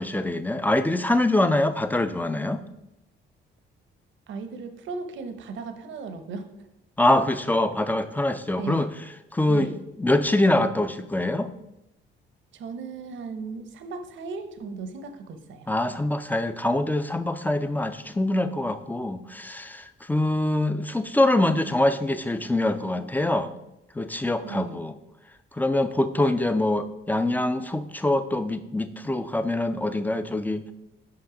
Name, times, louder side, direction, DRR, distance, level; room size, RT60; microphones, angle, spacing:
voice 1, 0.0-2.6 7.0-8.9 9.3-9.7 10.0-11.5 15.7-23.5 24.0-25.0 25.5-30.7, left 1 dB, 10° left, 10 dB, 0.4 m, -24 dB
voice 2, 4.3-6.5 8.6-8.9 9.5-9.8 12.5-15.7 24.4-24.7, right 4 dB, 70° right, 9 dB, 0.8 m, -36 dB
5.8 x 5.3 x 5.0 m, 0.91 s
cardioid pair, 90°, 20 cm